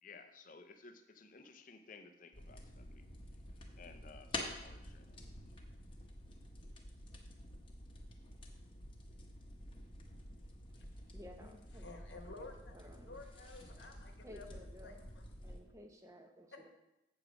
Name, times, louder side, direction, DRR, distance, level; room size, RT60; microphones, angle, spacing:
voice 1, 0.0-3.1 3.8-5.2, left 4 dB, 45° left, 7 dB, 0.6 m, -57 dB
sound 1, 2.3-15.6, left 1 dB, 25° left, 0.9 m, -49 dB
voice 2, 11.1-11.9 12.3-12.4 12.7-13.5 14.2-15.0 15.4-16.7, equal, 15° right, 4 dB, 0.8 m, -55 dB
voice 3, 11.8-12.7 13.1-14.5 14.8-15.2 16.5-16.7, left 3 dB, 60° left, 3 dB, 1.1 m, -53 dB
8.1 x 4.9 x 6.1 m, 0.93 s
head